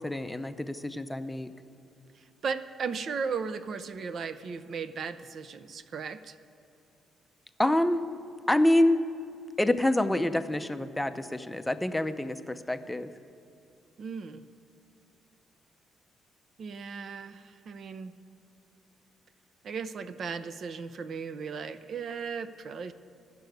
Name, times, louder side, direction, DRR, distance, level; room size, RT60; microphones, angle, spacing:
voice 1, 0.0-1.5 7.6-8.1 8.5-9.0 9.6-13.1, left 1 dB, 10° left, 10 dB, 0.5 m, -26 dB
voice 2, 2.1-6.4 14.0-14.5 16.6-18.1 19.6-22.9, right 5 dB, 55° right, 13 dB, 0.5 m, -36 dB
12.5 x 6.8 x 9.3 m, 2.6 s
cardioid pair, 90°, 0 cm